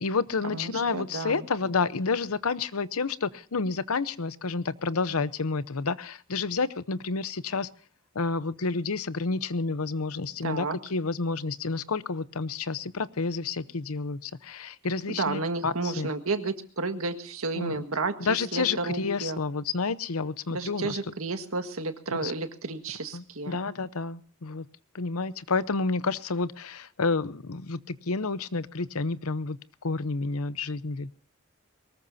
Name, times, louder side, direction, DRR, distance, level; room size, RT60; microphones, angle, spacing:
voice 1, 0.0-7.7 8.1-16.1 17.6-17.8 18.2-21.0 22.2-22.3 23.1-24.7 24.9-31.1, left 4 dB, 90° left, 16 dB, 0.8 m, -30 dB
voice 2, 0.5-1.5 10.4-10.8 15.1-19.4 20.5-23.6, right 3 dB, 75° right, 7 dB, 1.7 m, -32 dB
23.0 x 19.5 x 2.7 m, 0.41 s
head